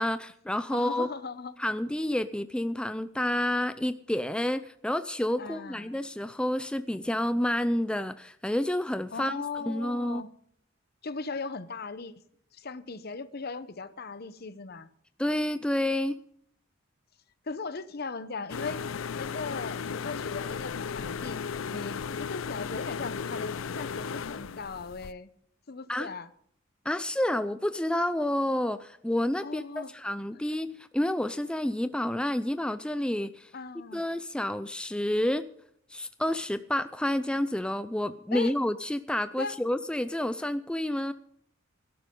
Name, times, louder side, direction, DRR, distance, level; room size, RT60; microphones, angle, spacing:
voice 1, 0.0-1.1 1.6-10.2 15.2-16.2 25.9-26.1 26.9-33.5 33.9-35.5 35.9-41.1, left 1 dB, 5° left, 0.4 m, -29 dB
voice 2, 0.7-1.5 5.4-6.1 9.1-10.3 11.0-12.1 12.5-14.9 17.4-18.8 19.2-21.4 21.7-25.3 25.7-26.3 29.4-29.9 33.5-34.0 38.3-38.5 39.4-39.5, left 4 dB, 50° left, 0.8 m, -38 dB
sound 1, 18.5-25.1, left 6 dB, 90° left, 0.5 m, -35 dB
17.5 x 12.0 x 3.8 m
head